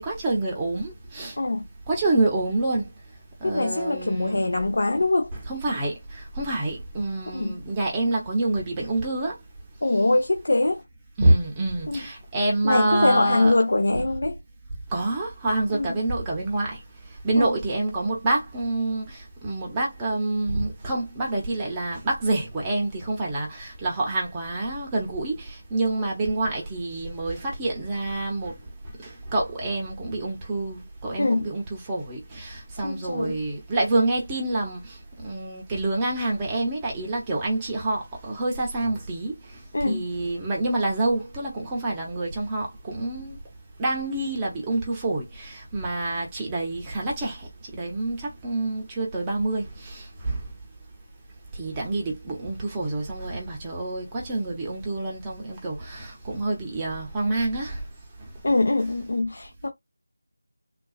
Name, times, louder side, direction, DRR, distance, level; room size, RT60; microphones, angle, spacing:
voice 1, 0.0-1.4 1.9-2.9 3.4-4.4 5.5-9.4 11.2-13.5 14.9-28.6 29.0-43.4 43.8-50.5 51.5-57.8 58.2-58.3, right 2 dB, 10° right, 0.7 m, -27 dB
voice 2, 3.4-5.3 7.3-7.6 9.8-10.8 11.9-12.1 12.6-14.4 15.7-15.9 17.4-17.5 31.2-31.5 32.8-33.4 39.7-40.0 58.4-59.7, left 2 dB, 65° left, 0.8 m, -23 dB
3.7 x 2.3 x 2.4 m
figure-of-eight pair, 170°, 0 cm